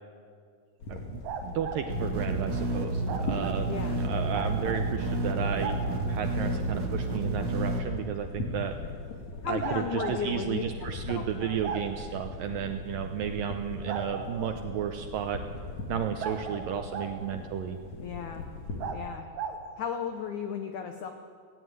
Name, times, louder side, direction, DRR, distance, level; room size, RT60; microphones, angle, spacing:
sound 1, 0.8-18.9, left 3 dB, 45° left, 3.0 m, -40 dB
voice 1, 0.9-8.8 9.5-15.4 15.9-17.8, right 9 dB, 80° right, 6 dB, 2.0 m, -33 dB
sound 2, 1.2-1.8 3.1-3.6 4.3-4.8 5.6-5.8 7.6-7.7 9.6-10.2 11.6-11.8 13.9-14.5 16.2-17.1 18.8-19.0 19.3-19.6, right 6 dB, 60° right, 2.3 m, -36 dB
sound 3, 1.9-7.8, right 2 dB, 35° right, 1.9 m, -30 dB
voice 2, 3.7-4.0 9.4-10.6 11.1-11.6 18.0-18.4 18.9-19.2 19.8-21.1, left 7 dB, 80° left, 6 dB, 1.7 m, -35 dB
17.5 x 17.0 x 9.4 m, 2.2 s
omnidirectional pair, 4.9 m